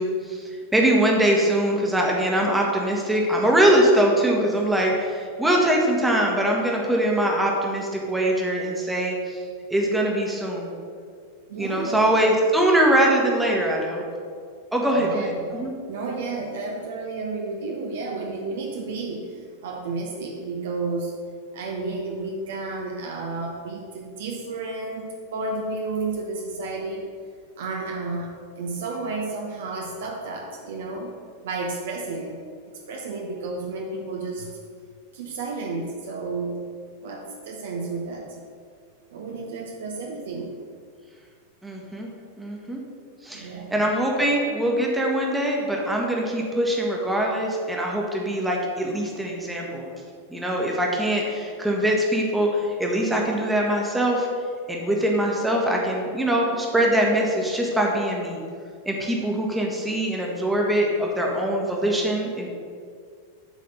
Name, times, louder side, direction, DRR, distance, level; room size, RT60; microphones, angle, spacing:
voice 1, 0.0-9.4 9.7-10.7 11.5-14.0 14.7-15.7 41.6-42.1 42.4-42.8 43.2-49.9 50.3-54.3 54.7-58.4 58.8-62.5, right 1 dB, 5° right, -1 dB, 1.3 m, -22 dB
voice 2, 11.5-12.3 14.9-21.1 21.5-27.1 27.6-32.4 32.9-34.5 35.1-36.6 37.0-38.3 39.1-40.6 43.3-43.8, right 3 dB, 60° right, 1 dB, 0.9 m, -32 dB
8.1 x 4.1 x 6.6 m, 2.1 s
figure-of-eight pair, 90°, 0 cm